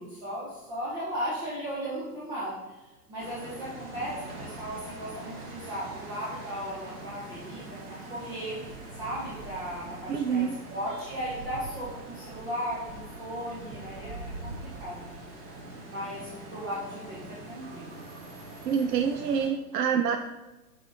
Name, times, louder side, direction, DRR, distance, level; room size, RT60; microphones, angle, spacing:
voice 1, 0.0-2.6 3.1-8.6 9.0-15.0 15.9-18.1, equal, 10° right, -7 dB, 0.4 m, -36 dB
sound 1, 3.2-19.5, right 2 dB, 30° right, 1.2 m, -43 dB
voice 2, 10.1-10.6 18.6-20.2, right 7 dB, 80° right, 7 dB, 0.6 m, -26 dB
7.6 x 4.7 x 2.7 m, 1.1 s
figure-of-eight pair, 115°, 48 cm